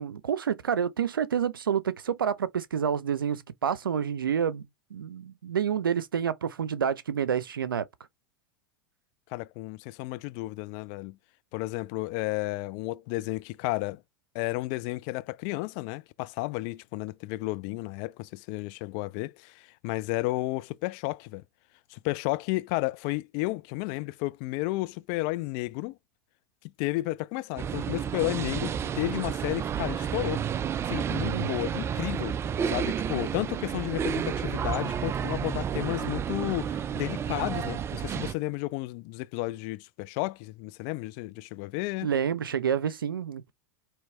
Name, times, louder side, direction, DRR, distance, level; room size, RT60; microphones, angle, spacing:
voice 1, 0.0-7.9 31.3-31.6 42.0-43.5, right 8 dB, 85° right, 0.6 m, -28 dB
voice 2, 9.3-11.2 11.5-14.0 14.3-21.4 21.9-26.0 26.8-30.4 30.9-32.4 32.7-42.1, left 20 dB, 50° left, 0.4 m, -32 dB
sound 1, 27.6-38.3, right 8 dB, 25° right, 0.4 m, -31 dB
4.6 x 3.1 x 3.2 m
hypercardioid pair, 100°, 11 cm